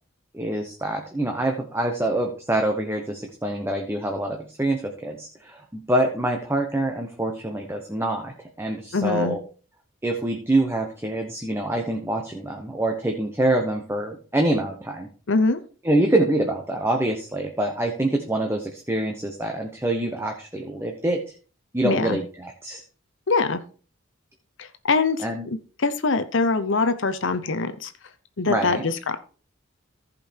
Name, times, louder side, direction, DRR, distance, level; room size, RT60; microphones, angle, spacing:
voice 1, 0.3-9.4 10.0-15.1 15.8-21.2 21.7-22.8 25.2-25.4 28.4-28.8, right 1 dB, 10° right, 3 dB, 0.9 m, -25 dB
voice 2, 8.9-9.4 15.3-15.6 21.8-22.2 23.3-23.6 24.6-25.2 25.8-27.9 28.4-29.2, left 3 dB, 60° left, 10 dB, 0.7 m, -23 dB
15.0 x 5.3 x 4.4 m, 0.39 s
head